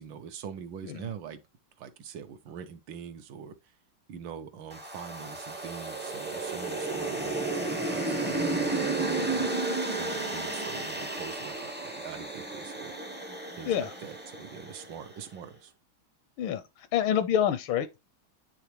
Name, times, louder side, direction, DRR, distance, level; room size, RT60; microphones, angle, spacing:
voice 1, 0.0-1.4 1.8-3.7 4.1-9.5 9.9-12.9 13.6-15.7, right 7 dB, 75° right, 1.5 m, -43 dB
sound 1, 4.7-15.0, right 2 dB, 15° right, 0.4 m, -33 dB
voice 2, 16.4-18.0, left 9 dB, 80° left, 1.4 m, -28 dB
9.3 x 3.5 x 3.1 m
omnidirectional pair, 2.2 m